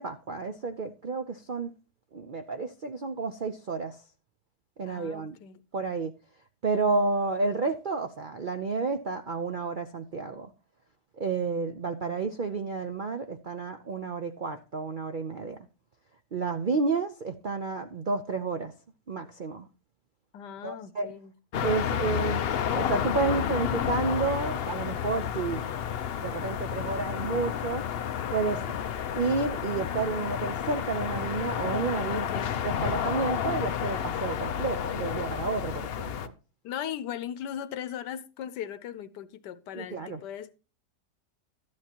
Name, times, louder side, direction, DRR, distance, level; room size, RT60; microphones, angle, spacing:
voice 1, 0.0-1.7 2.1-4.0 4.8-5.4 5.7-6.1 6.6-10.5 11.2-15.6 16.3-18.7 19.1-19.7 20.6-21.1 21.6-25.7 26.2-27.9 28.3-28.6 29.1-32.2 32.6-36.3 39.7-40.2, right 4 dB, 60° right, 0.5 m, -31 dB
voice 2, 4.9-5.6 20.3-21.4 32.1-32.6 36.6-40.5, left 10 dB, 90° left, 1.4 m, -38 dB
sound 1, 21.5-36.3, left 9 dB, 65° left, 0.6 m, -31 dB
13.0 x 10.5 x 2.9 m
omnidirectional pair, 1.8 m